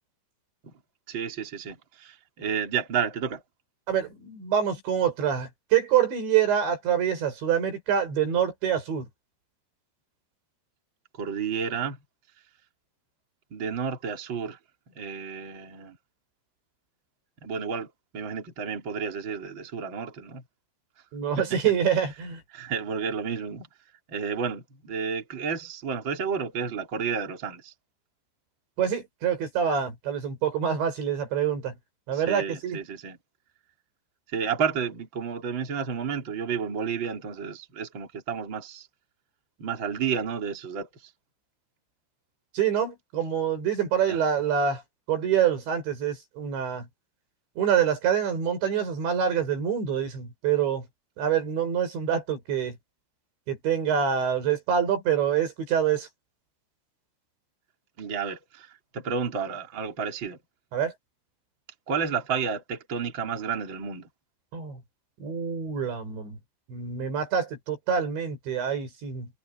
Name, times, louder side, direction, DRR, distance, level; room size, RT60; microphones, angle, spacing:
voice 1, 1.1-3.4 11.1-12.0 13.5-14.6 15.0-16.0 17.4-17.9 18.1-20.4 22.5-23.7 24.1-27.7 32.1-33.2 34.3-38.9 39.6-40.9 44.1-44.2 58.0-58.7 58.9-60.4 61.9-64.1, right 6 dB, 25° right, 3.7 m, -31 dB
voice 2, 3.9-9.1 21.1-22.4 28.8-31.7 32.1-32.8 42.6-44.8 45.1-46.9 47.6-50.9 51.2-52.8 53.5-56.1 60.7-60.9 64.5-64.8 65.2-66.4 66.7-69.3, right 8 dB, 70° right, 8.5 m, -26 dB
omnidirectional pair, 5.3 m